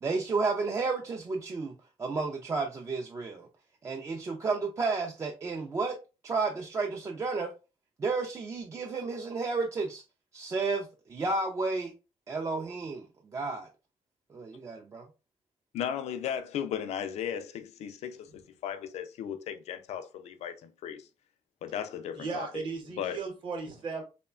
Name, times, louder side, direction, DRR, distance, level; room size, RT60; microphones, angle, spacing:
voice 1, 0.0-3.5 3.8-6.0 6.2-7.5 8.0-10.0 10.3-11.9 12.3-13.0 13.3-13.7 14.3-15.1, right 4 dB, 25° right, 0.3 m, -32 dB
voice 2, 15.7-21.1 21.6-22.5 23.0-23.2, left 9 dB, 70° left, 0.4 m, -36 dB
voice 3, 22.1-24.0, right 4 dB, 45° right, 0.8 m, -36 dB
3.0 x 2.1 x 2.3 m
cardioid pair, 140°, 12 cm